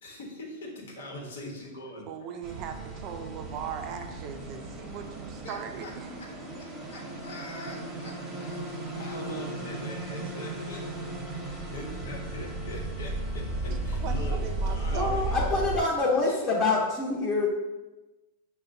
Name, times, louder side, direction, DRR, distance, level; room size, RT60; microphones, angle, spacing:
voice 1, 0.0-2.1 5.4-5.9 6.2-6.3 6.9-11.1 11.5-14.4 14.7-15.5 16.2-16.4, left 1 dB, 80° left, -1 dB, 1.0 m, -42 dB
voice 2, 2.1-6.2 13.7-15.2, right 7 dB, 40° right, 6 dB, 0.5 m, -39 dB
sound 1, 2.4-15.8, right 2 dB, 20° right, 0.9 m, -35 dB
voice 3, 14.9-17.5, left 3 dB, 25° left, -6 dB, 0.9 m, -26 dB
6.3 x 2.2 x 2.6 m, 1.1 s
hypercardioid pair, 130°, 0 cm